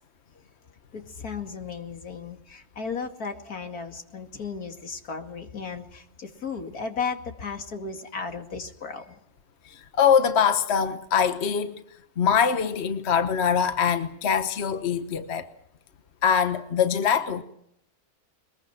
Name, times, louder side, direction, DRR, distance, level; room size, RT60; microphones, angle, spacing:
voice 1, 0.9-9.2, left 5 dB, 80° left, 2.8 m, -35 dB
voice 2, 9.7-11.8 12.2-15.5 16.2-17.4, left 7 dB, 50° left, 1.4 m, -23 dB
22.5 x 21.5 x 6.0 m
omnidirectional pair, 1.5 m